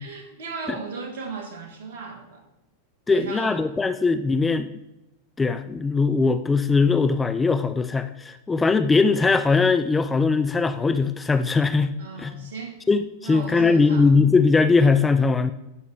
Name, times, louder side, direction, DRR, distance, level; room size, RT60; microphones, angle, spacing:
voice 1, 0.0-2.4 3.1-3.6 12.0-12.8 13.2-14.1, right 4 dB, 60° right, 4 dB, 1.5 m, -36 dB
voice 2, 3.1-4.7 5.4-12.5 12.9-15.5, left 4 dB, 15° left, 10 dB, 0.3 m, -20 dB
11.5 x 4.9 x 3.3 m, 0.91 s
figure-of-eight pair, 90°, 0 cm